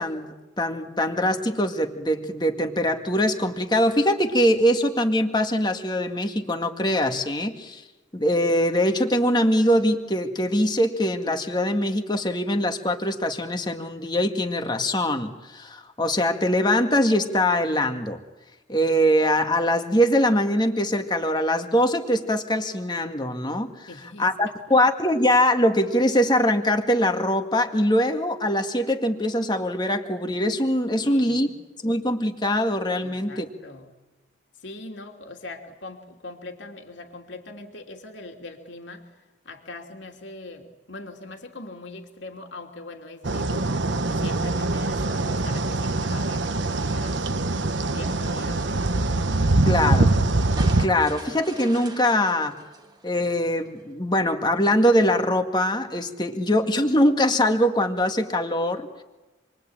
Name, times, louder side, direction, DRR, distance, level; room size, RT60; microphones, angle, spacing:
voice 1, 0.0-7.8 8.1-18.2 18.7-23.9 24.2-31.5 31.8-33.5 49.6-50.1 50.8-52.5 53.0-59.0, left 1 dB, 20° left, 5 dB, 2.0 m, -22 dB
voice 2, 23.9-24.8 31.0-31.6 33.0-33.9 34.5-43.8 44.2-47.3 47.9-48.8, left 2 dB, 75° left, 2 dB, 3.0 m, -41 dB
sound 1, 43.2-50.9, right 2 dB, 75° right, 1.2 m, -23 dB
sound 2, 50.6-53.8, right 2 dB, 20° right, 1.7 m, -42 dB
28.0 x 22.5 x 8.9 m, 1.2 s
head